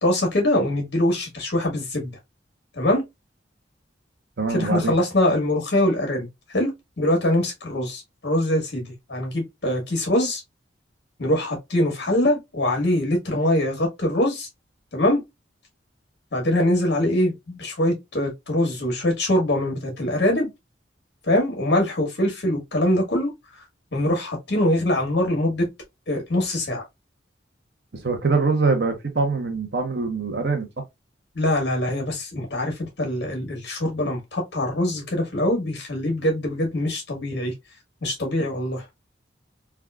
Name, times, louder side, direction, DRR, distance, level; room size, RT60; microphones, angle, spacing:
voice 1, 0.0-2.1 2.8-3.0 4.5-6.7 7.0-10.4 11.2-14.5 14.9-15.2 16.3-20.5 21.3-23.3 23.9-25.6 26.1-26.9 31.3-37.5 38.0-38.8, left 1 dB, 70° left, 1.3 m, -23 dB
voice 2, 4.4-4.9 27.9-30.8, right 4 dB, 65° right, 0.8 m, -23 dB
3.5 x 2.4 x 2.2 m
head